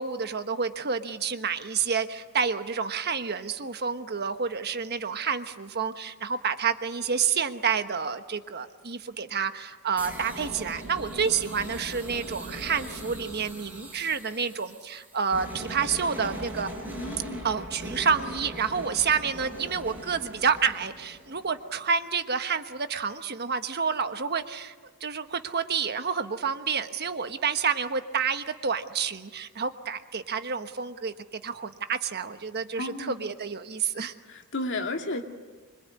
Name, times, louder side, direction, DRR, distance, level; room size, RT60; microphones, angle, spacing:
voice 1, 0.0-16.7 17.4-24.7 25.0-34.1, right 6 dB, 50° right, 9 dB, 1.3 m, -29 dB
sound 1, 10.0-21.8, right 1 dB, 10° right, 7.4 m, -40 dB
voice 2, 16.9-17.5 32.8-33.2 34.2-35.2, left 2 dB, 60° left, 4 dB, 2.5 m, -33 dB
25.5 x 23.0 x 9.6 m, 1.3 s
head